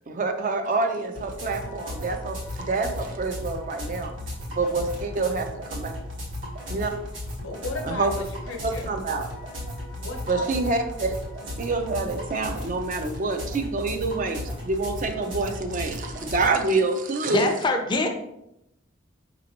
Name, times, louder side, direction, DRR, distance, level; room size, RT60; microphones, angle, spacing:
voice 1, 0.1-4.1 4.5-5.9 6.7-6.9 7.8-8.1 8.6-9.3 10.3-11.1 11.6-17.5, right 3 dB, 40° right, 5 dB, 0.4 m, -27 dB
sound 1, 1.1-16.5, left 1 dB, 75° right, 1.3 m, -35 dB
voice 2, 7.4-8.9 9.9-10.5, left 2 dB, 90° left, 3 dB, 0.8 m, -35 dB
voice 3, 17.3-18.1, left 2 dB, 25° left, 3 dB, 0.4 m, -23 dB
5.0 x 2.8 x 2.7 m, 0.83 s
head